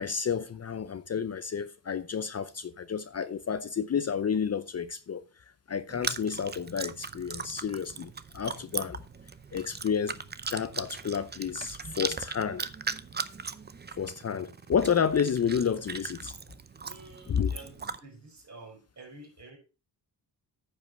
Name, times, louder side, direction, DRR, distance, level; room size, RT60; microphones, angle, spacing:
voice 1, 0.0-5.2 5.7-9.0 9.5-10.2 10.5-12.7 14.0-16.3 17.3-17.5, left 7 dB, 40° left, 0.6 m, -30 dB
Chewing mastication, 5.9-18.0, right 5 dB, 25° right, 0.6 m, -39 dB
voice 2, 16.8-19.6, right 2 dB, 40° right, 5.1 m, -49 dB
9.3 x 5.5 x 5.3 m
cardioid pair, 100°, 42 cm